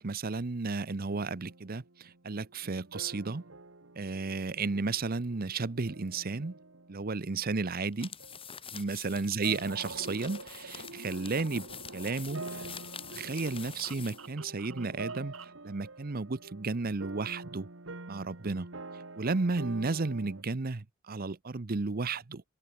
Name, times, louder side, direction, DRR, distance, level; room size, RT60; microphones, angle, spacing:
voice 1, 0.0-3.5 4.0-6.5 6.9-8.2 8.7-12.7 13.1-17.7 18.1-18.7 19.2-22.4, right 3 dB, 45° right, 0.8 m, -33 dB
sound 1, 1.1-7.9 8.2-8.5 9.4-20.4, right 3 dB, 65° right, 2.0 m, -48 dB
sound 2, 7.9-14.3, left 7 dB, 25° left, 3.0 m, -46 dB
sound 3, 9.7-15.6, right 2 dB, 80° right, 5.5 m, -47 dB
open air
head